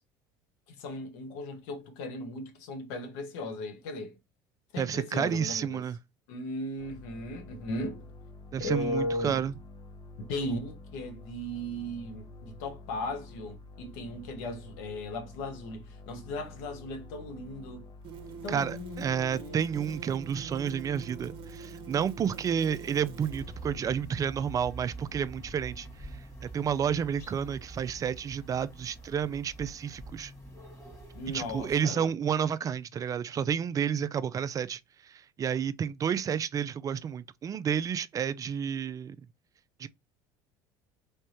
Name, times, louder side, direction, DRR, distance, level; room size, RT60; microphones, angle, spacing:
voice 1, 0.7-4.2 4.7-5.8 6.3-8.1 8.6-9.4 10.2-17.9 18.4-19.6 31.1-32.1, left 1 dB, 80° left, 1.2 m, -37 dB
voice 2, 4.8-6.0 8.5-9.5 18.5-26.1 26.4-30.3 31.3-39.2 39.8-39.9, right 8 dB, 35° right, 0.4 m, -30 dB
sound 1, 6.8-24.0, left 2 dB, 50° left, 1.0 m, -49 dB
sound 2, 16.4-16.5 18.0-23.5, right 8 dB, 55° right, 0.8 m, -45 dB
sound 3, 23.3-31.8, right 2 dB, 30° left, 2.0 m, -46 dB
3.5 x 3.3 x 2.8 m
supercardioid pair, 95°, 11 cm